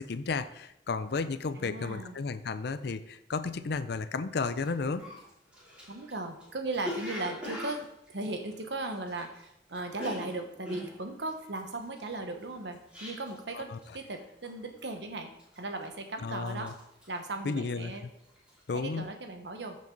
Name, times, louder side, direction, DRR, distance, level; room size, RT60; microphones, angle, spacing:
voice 1, 0.0-5.0 13.5-13.8 16.2-16.7 17.4-18.1 18.7-19.1, left 4 dB, 60° left, 11 dB, 0.5 m, -33 dB
voice 2, 1.5-2.2 5.9-16.7 17.1-18.1 18.7-19.8, right 2 dB, 70° right, 5 dB, 1.2 m, -37 dB
Cough, 4.6-4.7 5.0-9.4 9.7-13.5 13.8-14.2 14.4-14.9 15.4-16.0 16.3-18.0 18.3-18.6, left 1 dB, 5° right, 3.2 m, -42 dB
14.0 x 5.3 x 4.0 m, 0.81 s
head